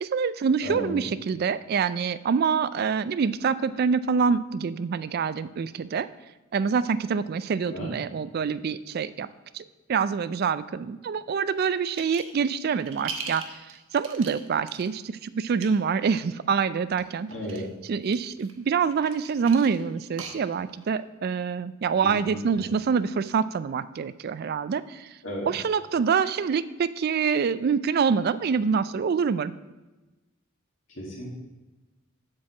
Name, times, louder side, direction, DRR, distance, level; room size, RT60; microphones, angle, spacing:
voice 1, 0.0-6.1 6.5-9.3 9.5-13.6 13.9-17.3 17.9-25.1 25.5-29.5, right 6 dB, 45° right, 15 dB, 0.3 m, -26 dB
voice 2, 0.6-1.0 7.7-7.9 17.3-17.7 22.2-22.6 25.2-25.5 30.9-31.3, equal, 65° left, -5 dB, 2.1 m, -34 dB
sound 1, 11.9-12.4 12.7-14.9 15.4-15.7 16.9-17.6 18.1-20.9, right 5 dB, 65° right, 1.0 m, -39 dB
7.5 x 4.7 x 7.0 m, 1.1 s
head